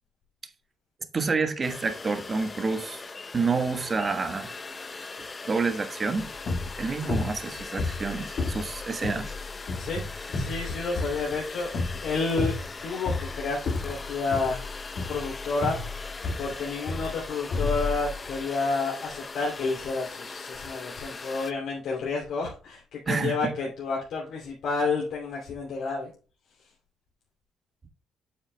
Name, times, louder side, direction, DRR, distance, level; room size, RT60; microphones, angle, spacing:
voice 1, 1.1-3.0 3.3-4.5 5.5-6.3 6.8-9.3 9.9-10.0 23.1-23.5, right 4 dB, 35° right, 1.3 m, -28 dB
sound 1, 1.6-21.5, left 4 dB, 30° left, 0.7 m, -40 dB
sound 2, 6.2-18.4, left 3 dB, 55° left, 1.8 m, -32 dB
voice 2, 10.3-11.7 12.0-12.6 12.8-14.6 15.1-15.8 16.4-26.1, left 4 dB, 75° left, 2.7 m, -30 dB
8.6 x 7.3 x 2.2 m
cardioid pair, 90°, 0 cm